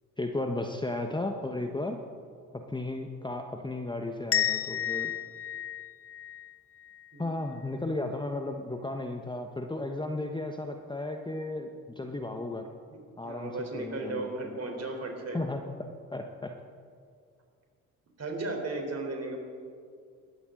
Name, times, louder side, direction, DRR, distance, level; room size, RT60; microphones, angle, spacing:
voice 1, 0.2-2.0 2.5-5.1 7.2-12.7 13.2-14.6 15.3-15.6 16.1-16.5, left 2 dB, 10° left, 4 dB, 1.1 m, -34 dB
sound 1, 4.3-7.1, left 11 dB, 30° left, 0.6 m, -32 dB
voice 2, 7.1-7.4 12.9-15.4 18.2-19.4, right 2 dB, 35° right, 2 dB, 3.9 m, -36 dB
19.5 x 13.0 x 3.9 m, 2.2 s
hypercardioid pair, 50°, 43 cm